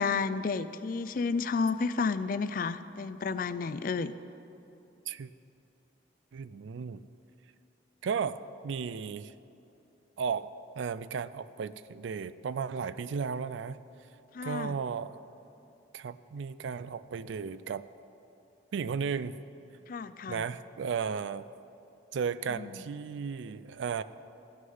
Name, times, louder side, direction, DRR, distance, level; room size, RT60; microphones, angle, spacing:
voice 1, 0.0-4.1 14.3-14.8 19.9-20.4 22.5-22.7, left 4 dB, 50° left, 13 dB, 0.3 m, -31 dB
voice 2, 6.3-7.0 8.0-9.3 10.2-13.8 14.4-15.2 15.9-17.8 18.7-19.4 20.3-21.4 22.1-24.0, right 6 dB, 80° right, 16 dB, 0.4 m, -34 dB
14.5 x 6.4 x 5.5 m, 2.9 s
head